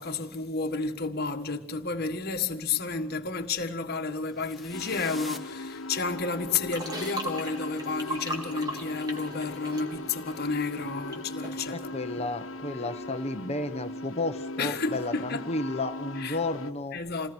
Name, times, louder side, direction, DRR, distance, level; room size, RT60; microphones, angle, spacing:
voice 1, 0.0-11.9 14.6-15.4 16.2-16.4 16.9-17.3, left 4 dB, 45° left, 1.7 m, -31 dB
sound 1, 4.3-6.4, left 1 dB, ahead, 1.4 m, -46 dB
sound 2, 4.7-16.7, left 2 dB, 65° left, 1.4 m, -40 dB
sound 3, 6.7-11.2 11.4-11.6, right 1 dB, 20° right, 3.6 m, -38 dB
voice 2, 11.7-17.0, left 2 dB, 30° left, 1.1 m, -32 dB
28.5 x 19.5 x 6.3 m
head